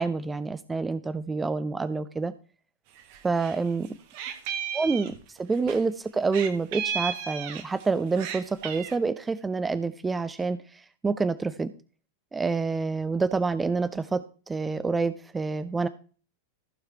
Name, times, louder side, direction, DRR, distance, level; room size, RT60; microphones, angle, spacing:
voice 1, 0.0-2.3 3.2-3.9 4.7-5.1 5.4-11.7 12.3-15.9, right 4 dB, 15° right, 13 dB, 0.5 m, -27 dB
Meow, 3.0-3.6 3.8-5.8 6.3-7.8 8.1-9.0, right 8 dB, 45° right, 1.2 m, -34 dB
14.5 x 4.8 x 4.6 m, 0.40 s
figure-of-eight pair, 90°, 0 cm